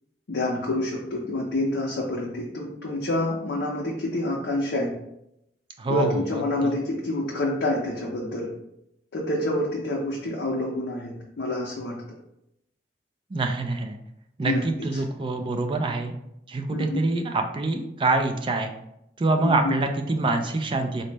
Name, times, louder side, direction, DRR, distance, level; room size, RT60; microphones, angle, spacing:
voice 1, 0.3-4.9 5.9-8.5 9.1-12.0 14.4-14.6 14.9-15.0 16.7-17.0 19.4-19.8, left 1 dB, 90° left, -3 dB, 0.6 m, -27 dB
voice 2, 5.8-6.4 13.3-14.0 14.4-16.1 16.5-18.7 19.2-21.0, right 2 dB, 30° right, 4 dB, 0.3 m, -25 dB
4.0 x 2.0 x 3.3 m, 0.81 s
head